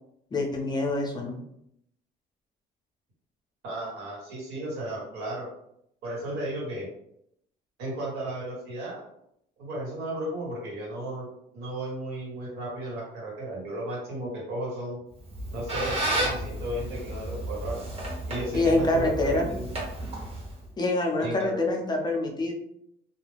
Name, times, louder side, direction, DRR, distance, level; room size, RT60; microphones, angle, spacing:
voice 1, 0.3-1.4 18.5-19.5 20.8-22.5, left 2 dB, 25° left, 1 dB, 0.5 m, -26 dB
voice 2, 3.6-5.5 6.0-6.9 7.8-9.0 9.6-11.3 11.5-15.0 15.5-17.8 18.3-19.7 21.2-21.7, right 1 dB, 85° right, -4 dB, 1.3 m, -34 dB
Squeak, 15.2-20.7, right 1 dB, 35° right, 1.1 m, -32 dB
2.3 x 2.2 x 3.3 m, 0.75 s
cardioid pair, 110°, 17 cm